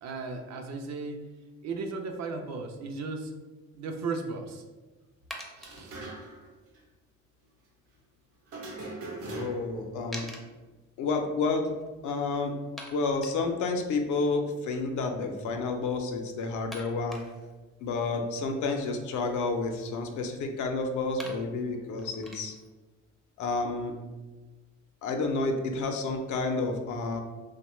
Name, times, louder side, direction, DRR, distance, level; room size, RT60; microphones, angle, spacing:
voice 1, 0.0-1.3 1.6-3.4 3.7-4.6 5.6-6.1, right 3 dB, 60° right, 4 dB, 0.5 m, -36 dB
sound 1, 5.3-5.8 9.0-9.1 9.3-9.4 10.1-10.4 11.5-11.6 11.8-11.9 12.8-13.4 15.6-15.8 16.7-17.6 19.0-20.2 20.9-21.0 21.2-22.7, equal, ahead, 0.4 m, -45 dB
sound 2, 5.6-6.5 6.7-6.8 8.5-9.8, right 2 dB, 85° right, 0.8 m, -40 dB
voice 2, 9.3-10.3 11.0-11.7 12.0-12.5 12.9-17.2 17.8-22.5 23.4-23.9 25.0-27.2, left 3 dB, 75° left, 4 dB, 0.5 m, -30 dB
2.9 x 2.1 x 3.0 m, 1.2 s
cardioid pair, 90°, 30 cm